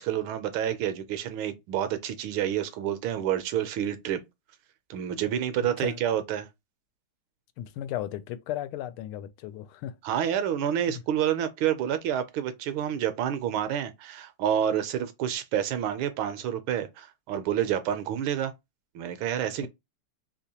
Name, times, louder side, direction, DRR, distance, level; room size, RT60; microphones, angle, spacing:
voice 1, 0.0-4.2 4.9-6.5 10.0-18.5 18.9-19.7, right 10 dB, 75° right, 1.4 m, -28 dB
voice 2, 5.6-6.0 7.6-10.3 10.9-11.0, left 12 dB, 85° left, 1.5 m, -36 dB
3.6 x 2.9 x 2.8 m
omnidirectional pair, 2.4 m